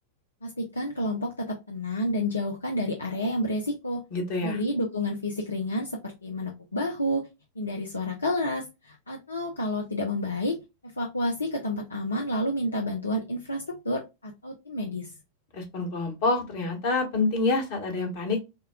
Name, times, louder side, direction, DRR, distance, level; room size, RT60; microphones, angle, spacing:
voice 1, 0.4-4.0 4.4-7.3 7.6-15.1, left 1 dB, 75° left, 1 dB, 0.7 m, -30 dB
voice 2, 4.1-4.6 15.5-18.4, left 3 dB, 50° left, 3 dB, 1.5 m, -27 dB
6.5 x 2.3 x 2.3 m, 0.24 s
figure-of-eight pair, 90°, 0 cm